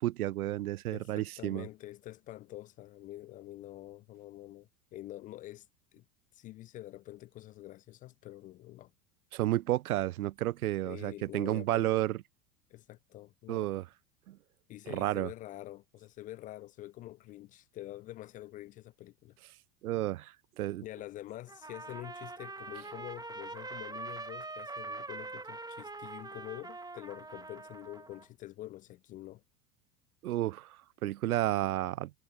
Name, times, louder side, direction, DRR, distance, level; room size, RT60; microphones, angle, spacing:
voice 1, 0.0-1.7 9.3-12.2 13.5-13.8 14.3-14.4 14.9-15.3 19.8-20.8 30.2-32.1, right 15 dB, 60° right, 0.8 m, -31 dB
voice 2, 0.9-5.7 5.9-6.0 6.3-8.9 10.8-11.9 12.7-13.7 14.7-19.4 20.8-29.4, left 15 dB, 20° left, 0.4 m, -46 dB
Trumpet, 21.5-28.2, right 3 dB, 10° right, 2.3 m, -43 dB
figure-of-eight pair, 80°, 48 cm